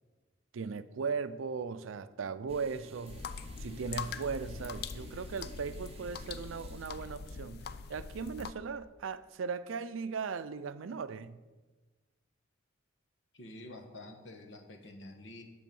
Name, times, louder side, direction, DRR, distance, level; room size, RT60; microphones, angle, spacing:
voice 1, 0.5-3.2 3.6-11.4, right 5 dB, 85° right, 14 dB, 0.5 m, -38 dB
sound 1, 2.5-8.4, right 2 dB, 30° right, 0.6 m, -54 dB
sound 2, 3.1-8.5, left 6 dB, 55° left, 0.4 m, -43 dB
voice 2, 13.3-15.4, left 1 dB, 70° left, 5 dB, 1.3 m, -48 dB
10.0 x 7.1 x 5.3 m, 1.3 s
head